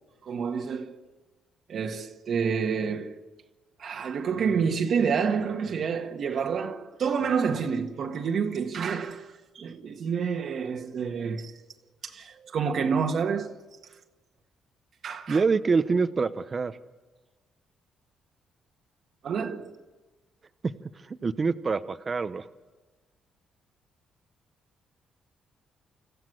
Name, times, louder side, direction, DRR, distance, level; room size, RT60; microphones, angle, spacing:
voice 1, 0.2-1.0 1.7-3.2 3.8-11.5 12.0-13.5 15.0-15.4 19.2-19.7, right 6 dB, 60° right, 1.6 m, -28 dB
voice 2, 15.3-16.8 20.6-20.7 21.1-22.5, right 4 dB, 35° right, 0.9 m, -25 dB
27.0 x 14.5 x 7.8 m
cardioid pair, 90°, 0 cm